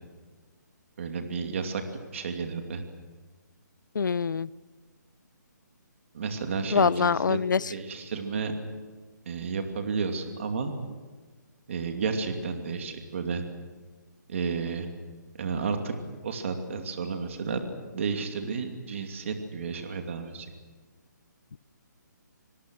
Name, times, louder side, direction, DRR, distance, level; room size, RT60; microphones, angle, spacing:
voice 1, 1.0-1.8 2.1-2.8 6.1-7.4 7.7-8.5 9.3-10.7 11.7-13.4 14.3-14.9 15.4-15.9 16.2-17.6 17.9-20.5, right 5 dB, 40° right, 5 dB, 2.6 m, -32 dB
voice 2, 3.9-4.5 6.7-7.7 21.5-21.6, left 5 dB, 75° left, 21 dB, 0.7 m, -24 dB
26.0 x 22.0 x 6.5 m, 1.4 s
hypercardioid pair, 170°, 10 cm